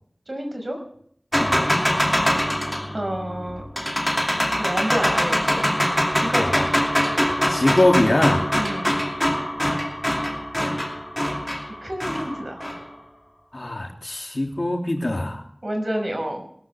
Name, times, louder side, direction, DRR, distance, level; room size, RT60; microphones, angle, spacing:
voice 1, 0.3-0.8 2.9-3.6 4.6-5.7 6.1-6.7 7.1-7.5 8.6-8.9 11.8-12.6 15.6-16.4, right 1 dB, 55° right, 3 dB, 5.5 m, -29 dB
sound 1, 1.3-12.9, equal, 10° left, 2.6 m, -23 dB
voice 2, 1.4-1.7 6.4-6.5 7.5-8.5 13.5-15.4, left 1 dB, 60° left, 2 dB, 2.8 m, -22 dB
21.5 x 13.5 x 3.5 m, 0.64 s
wide cardioid pair, 45°, 0 cm